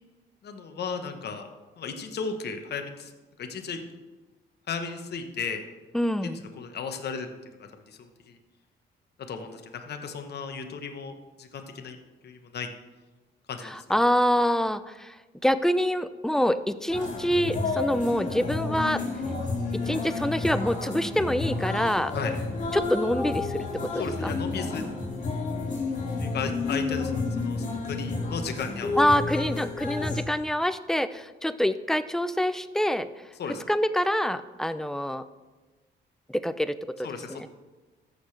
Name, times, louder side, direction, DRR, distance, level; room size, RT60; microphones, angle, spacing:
voice 1, 0.4-1.5 1.8-3.1 3.4-3.8 4.7-5.6 6.2-7.3 7.6-8.4 9.3-12.0 12.2-12.7 13.5-13.8 22.1-22.4 23.9-24.9 26.2-29.0 33.4-33.6 37.0-37.5, left 5 dB, 55° left, 5 dB, 1.0 m, -35 dB
voice 2, 5.9-6.4 13.6-15.2 15.4-19.0 19.8-22.1 22.7-24.3 29.0-33.1 33.7-35.2 36.3-37.5, equal, ahead, 13 dB, 0.4 m, -26 dB
sound 1, 16.9-30.2, left 3 dB, 40° left, 2.4 m, -31 dB
14.0 x 6.6 x 3.3 m, 1.2 s
cardioid pair, 90°, 20 cm